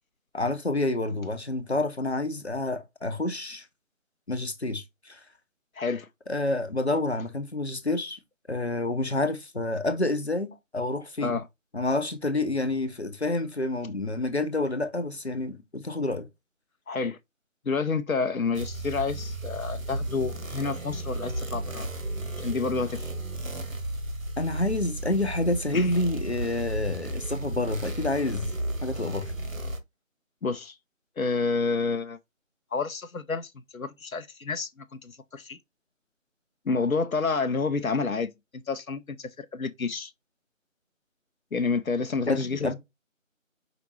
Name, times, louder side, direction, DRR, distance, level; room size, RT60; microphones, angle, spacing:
voice 1, 0.3-3.6 4.3-5.2 6.3-8.2 8.5-11.4 11.7-16.3 24.4-28.5 28.8-29.3 42.3-42.7, left 2 dB, 55° left, 0.8 m, -28 dB
voice 2, 5.8-6.1 11.2-11.5 16.9-17.2 17.6-21.9 22.4-23.0 25.7-25.9 30.4-30.8 31.2-32.2 32.7-34.7 35.0-35.6 36.7-40.1 41.5-42.7, left 4 dB, 85° left, 0.7 m, -29 dB
sound 1, 18.5-29.8, right 1 dB, 75° right, 1.1 m, -34 dB
5.0 x 2.4 x 3.2 m
figure-of-eight pair, 170°, 40 cm